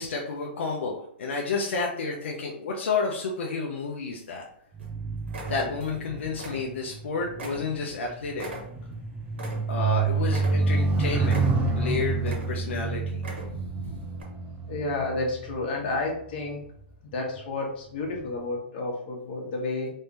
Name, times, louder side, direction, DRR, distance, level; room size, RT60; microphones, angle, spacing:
voice 1, 0.0-4.4 5.5-8.5 9.7-11.4 11.8-13.2 13.5-14.1, left 4 dB, 80° left, 0 dB, 0.7 m, -31 dB
sound 1, 3.8-4.4 4.8-5.0 5.3-6.0 6.3-7.0 7.4-9.9 10.3-10.9 11.3-11.8 12.2-12.8 13.1-13.7 14.2-14.3, right 1 dB, 80° right, 1.5 m, -40 dB
sound 2, 4.7-16.4 17.1-17.4, right 3 dB, 15° right, 0.6 m, -29 dB
voice 2, 14.7-16.6 17.0-19.9, left 2 dB, 50° left, -1 dB, 1.3 m, -31 dB
3.4 x 3.2 x 2.8 m, 0.68 s
hypercardioid pair, 145°, 6 cm